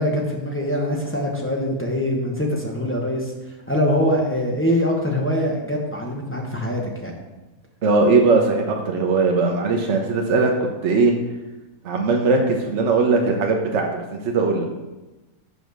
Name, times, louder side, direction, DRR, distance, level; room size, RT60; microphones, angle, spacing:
voice 1, 0.0-3.3 3.7-7.1, equal, 10° left, -1 dB, 0.8 m, -23 dB
voice 2, 7.8-10.5 10.8-11.1 11.8-14.6, right 3 dB, 60° right, 1 dB, 1.0 m, -19 dB
5.6 x 4.7 x 6.3 m, 1.1 s
omnidirectional pair, 1.5 m